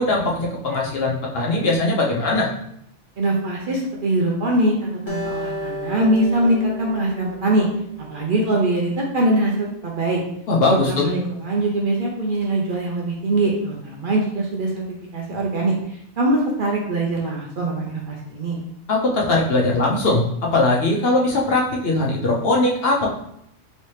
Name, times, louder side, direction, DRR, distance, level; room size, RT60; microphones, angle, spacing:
voice 1, 0.0-2.5 10.5-11.1 18.9-23.1, left 2 dB, 60° left, -2 dB, 0.8 m, -20 dB
voice 2, 3.2-7.7 8.1-10.2 10.6-14.8 15.1-15.7 16.2-18.6, right 1 dB, 55° right, -2 dB, 0.7 m, -22 dB
Acoustic guitar, 5.1-8.4, equal, 30° left, 0.4 m, -33 dB
3.1 x 2.8 x 3.1 m, 0.72 s
omnidirectional pair, 1.2 m